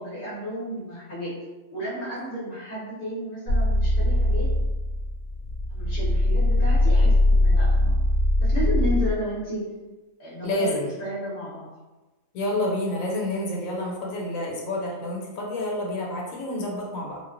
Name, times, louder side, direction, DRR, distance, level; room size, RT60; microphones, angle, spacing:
voice 1, 0.0-1.4 1.7-4.5 5.7-8.0 8.4-9.6 10.2-11.7, equal, 50° left, -8 dB, 0.8 m, -32 dB
sound 1, 3.5-9.1, left 1 dB, 75° right, 0.9 m, -21 dB
voice 2, 10.4-10.9 12.3-17.2, left 1 dB, 85° left, -2 dB, 1.0 m, -29 dB
2.4 x 2.1 x 2.4 m, 1.2 s
omnidirectional pair, 1.4 m